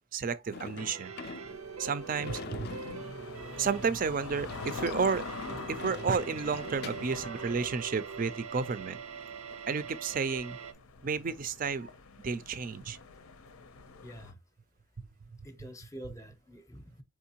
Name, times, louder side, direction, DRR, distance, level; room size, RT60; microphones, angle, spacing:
voice 1, 0.1-1.1 1.8-2.8 3.6-5.2 5.7-9.0 9.7-10.6 11.0-11.9 12.2-13.0, right 5 dB, 40° right, 0.4 m, -31 dB
Sliding door / Slam, 0.5-7.2, left 5 dB, 50° left, 0.3 m, -45 dB
sound 1, 0.8-10.7, right 6 dB, 90° right, 0.6 m, -43 dB
sound 2, 1.5-14.3, left 4 dB, 85° left, 0.6 m, -46 dB
voice 2, 7.1-7.7 14.0-14.3 15.4-17.0, equal, 15° left, 0.6 m, -47 dB
4.6 x 3.6 x 2.8 m
head